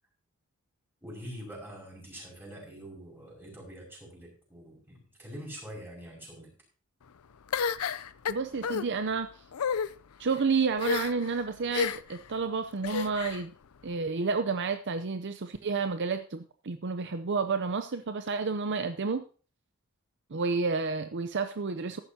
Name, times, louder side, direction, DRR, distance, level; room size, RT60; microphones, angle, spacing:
voice 1, 1.0-6.5, equal, 10° right, -2 dB, 5.8 m, -45 dB
sound 1, 7.5-8.8 9.5-9.9 10.8-11.3 11.7-12.2 12.8-13.4, left 6 dB, 80° left, 0.5 m, -30 dB
voice 2, 8.3-9.3 10.2-13.5 13.8-19.2 20.3-22.0, right 4 dB, 55° right, 9 dB, 0.7 m, -30 dB
14.5 x 11.5 x 2.8 m, 0.36 s
head